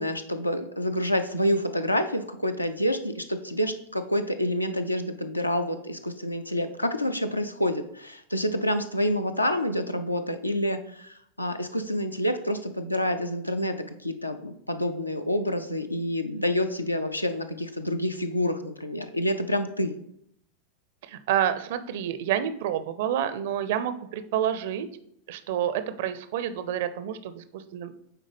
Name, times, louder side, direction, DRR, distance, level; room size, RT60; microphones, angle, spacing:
voice 1, 0.0-13.8 14.0-19.9, left 1 dB, 85° left, 8 dB, 0.5 m, -28 dB
voice 2, 21.1-24.9 25.3-28.0, right 10 dB, 55° right, 12 dB, 0.4 m, -29 dB
9.1 x 3.6 x 3.4 m, 0.73 s
figure-of-eight pair, 90°, 0 cm